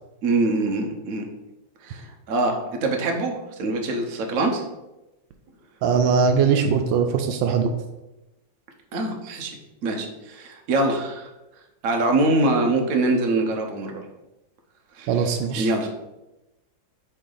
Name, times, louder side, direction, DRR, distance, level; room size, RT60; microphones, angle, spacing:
voice 1, 0.2-1.3 1.8-4.6 8.9-9.5 9.8-11.3 11.8-14.0 15.0-15.3 15.6-15.9, right 2 dB, 55° right, 2 dB, 1.1 m, -24 dB
voice 2, 5.8-7.7 15.1-15.7, right 6 dB, 80° right, 5 dB, 1.3 m, -21 dB
8.5 x 3.3 x 3.9 m, 0.98 s
omnidirectional pair, 2.1 m